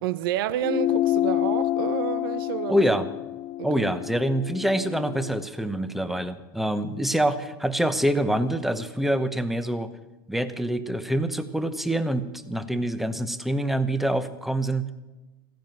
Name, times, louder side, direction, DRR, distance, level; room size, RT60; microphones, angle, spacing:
voice 1, 0.0-2.8 3.6-3.9, right 12 dB, 70° right, 0.7 m, -29 dB
sound 1, 0.6-5.4, left 14 dB, 35° left, 0.4 m, -28 dB
voice 2, 2.7-3.1 3.6-9.9 10.3-14.9, right 1 dB, ahead, 0.9 m, -25 dB
15.5 x 10.5 x 7.6 m
hypercardioid pair, 125°, 12 cm